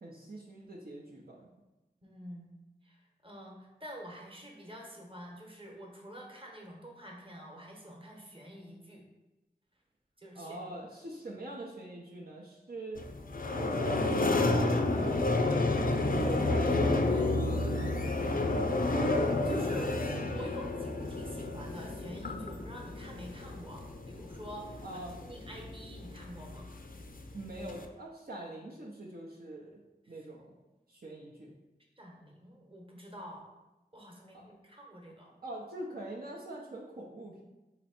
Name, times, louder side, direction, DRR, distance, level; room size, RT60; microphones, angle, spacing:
voice 1, 0.0-1.5 10.3-13.0 13.5-15.5 16.0-18.3 24.8-25.2 27.3-29.8 30.1-30.5 30.9-31.5 34.3-34.5 35.4-37.4, right 1 dB, 60° right, -4 dB, 0.6 m, -43 dB
voice 2, 2.0-2.5 2.8-9.0 10.2-10.7 18.5-19.2 19.4-26.7 32.0-33.5 33.9-35.3, right 1 dB, 30° right, -1 dB, 1.0 m, -47 dB
sound 1, 13.0-27.9, left 2 dB, 55° left, 0.4 m, -31 dB
4.3 x 2.9 x 4.3 m, 1.0 s
wide cardioid pair, 50°, 17 cm